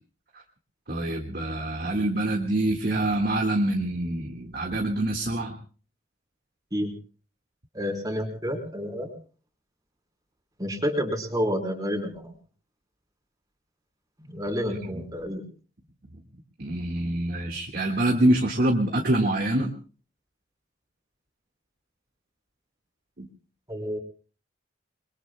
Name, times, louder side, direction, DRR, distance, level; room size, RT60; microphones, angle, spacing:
voice 1, 0.9-5.5 14.7-15.0 16.6-19.7 23.2-23.3, right 1 dB, 50° right, 1 dB, 1.7 m, -25 dB
voice 2, 7.7-9.1 10.6-12.3 14.3-15.5 23.7-24.0, equal, 20° right, 1 dB, 3.6 m, -29 dB
29.5 x 22.0 x 2.2 m, 0.40 s
head